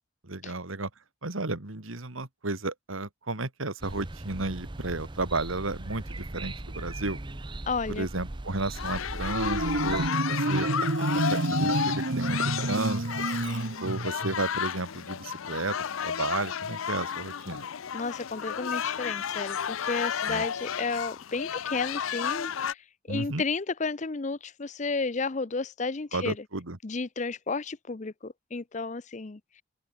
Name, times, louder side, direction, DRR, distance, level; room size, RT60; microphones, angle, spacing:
voice 1, 0.2-0.9 1.2-7.2 7.9-10.7 11.1-13.1 13.8-15.8 16.0-17.7 20.3-20.4 23.1-23.4 26.1-26.8, right 2 dB, 85° right, 2.3 m, -33 dB
sound 1, 3.8-10.1, right 2 dB, 25° right, 0.8 m, -39 dB
voice 2, 7.7-8.1 17.9-26.4 26.8-29.6, left 4 dB, 35° left, 0.6 m, -32 dB
sound 2, 8.7-22.7, left 8 dB, 90° left, 0.6 m, -33 dB
Marimba xylophone, 9.2-14.4, right 2 dB, 65° right, 1.3 m, -29 dB
open air
head